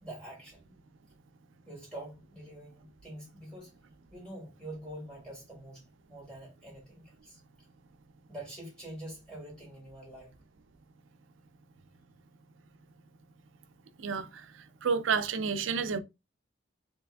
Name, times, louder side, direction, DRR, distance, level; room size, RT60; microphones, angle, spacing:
voice 1, 0.0-0.7 1.7-3.7 4.1-7.4 8.3-10.3, right 1 dB, 5° left, 2.0 m, -46 dB
voice 2, 14.0-14.4 14.8-16.0, right 5 dB, 85° right, 0.5 m, -30 dB
3.3 x 2.9 x 3.4 m
head